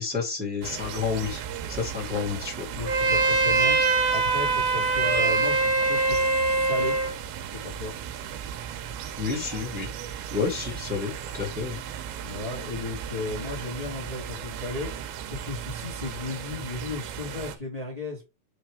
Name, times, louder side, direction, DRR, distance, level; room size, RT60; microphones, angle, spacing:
voice 1, 0.0-1.4 1.7-2.6 9.2-9.9 10.3-11.8, left 5 dB, 10° right, 0.6 m, -30 dB
sound 1, 0.6-17.6, right 9 dB, 85° right, 3.2 m, -36 dB
voice 2, 2.7-7.0 7.4-8.0 12.2-18.2, left 3 dB, 80° left, 0.3 m, -35 dB
Trumpet, 2.9-7.1, right 3 dB, 65° right, 1.8 m, -23 dB
6.7 x 3.5 x 4.7 m
omnidirectional pair, 5.1 m